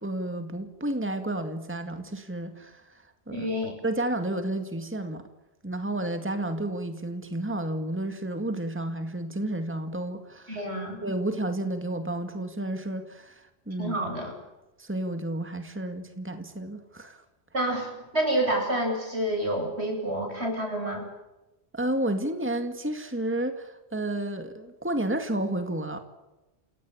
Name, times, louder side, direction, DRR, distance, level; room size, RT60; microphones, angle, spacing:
voice 1, 0.0-3.5 3.8-5.2 5.6-10.6 11.0-13.9 14.8-17.2 21.7-26.0, right 1 dB, 10° right, 7 dB, 2.0 m, -31 dB
voice 2, 3.3-3.7 10.5-11.0 13.8-14.3 17.5-21.0, right 1 dB, 85° right, 2 dB, 8.4 m, -28 dB
28.5 x 17.5 x 8.5 m, 1.0 s
omnidirectional pair, 1.1 m